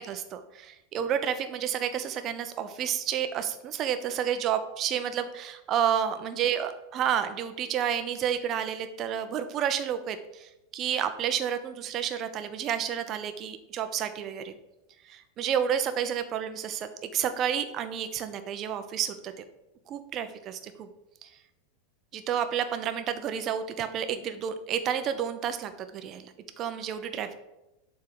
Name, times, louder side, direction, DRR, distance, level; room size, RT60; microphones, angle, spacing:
voice 1, 0.0-14.6 15.0-19.4 19.9-20.9 21.2-21.3 22.1-27.4, right 9 dB, 35° right, 9 dB, 0.8 m, -30 dB
7.4 x 3.7 x 6.4 m, 0.94 s
figure-of-eight pair, 85°, 0 cm